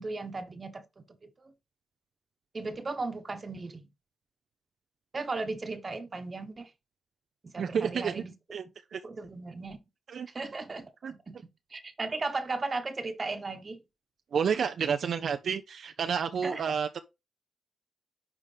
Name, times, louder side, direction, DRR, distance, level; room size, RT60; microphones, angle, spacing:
voice 1, 0.0-1.5 2.5-3.9 5.1-6.7 7.5-8.3 9.0-9.8 10.3-11.4 11.7-13.8 16.4-16.6, right 3 dB, 40° right, 1.2 m, -36 dB
voice 2, 7.6-8.1 8.5-8.6 8.9-9.0 10.1-10.3 11.0-11.1 14.3-17.0, right 6 dB, 70° right, 0.5 m, -30 dB
10.0 x 3.5 x 3.4 m
cardioid pair, 70°, 0 cm